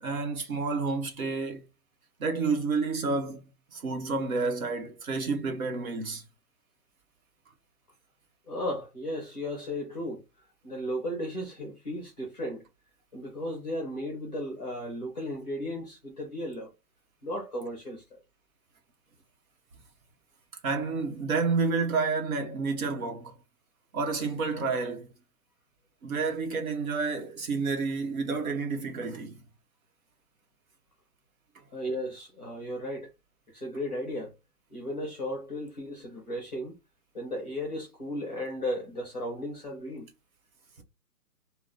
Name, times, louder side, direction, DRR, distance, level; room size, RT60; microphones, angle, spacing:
voice 1, 0.0-1.6 2.2-3.4 3.7-6.3 20.6-23.3 23.9-25.1 26.0-29.4 40.8-40.9, right 4 dB, 60° right, 1.0 m, -30 dB
voice 2, 8.5-10.2 10.6-12.6 13.1-16.7 17.2-18.2 31.7-33.1 33.5-34.3 34.7-36.7 37.1-40.1, equal, 30° left, 0.6 m, -35 dB
2.6 x 2.2 x 3.5 m
hypercardioid pair, 180°, 47 cm